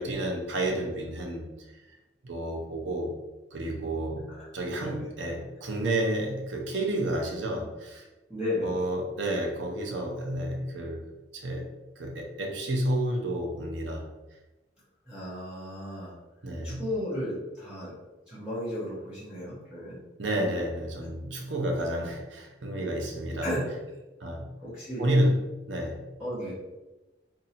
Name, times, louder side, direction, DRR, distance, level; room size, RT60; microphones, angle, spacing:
voice 1, 0.0-1.5 2.2-3.2 3.5-8.1 8.6-11.7 12.0-14.1 16.4-16.8 20.2-23.5 24.2-24.5 25.0-26.1, right 1 dB, 80° right, 1 dB, 0.7 m, -30 dB
voice 2, 4.8-5.1 8.3-8.8 15.1-16.1 16.6-17.9 18.3-20.0 22.7-22.9 23.4-23.6 24.6-25.1 26.2-26.5, left 1 dB, 5° right, -10 dB, 0.9 m, -34 dB
2.7 x 2.7 x 4.1 m, 1.1 s
head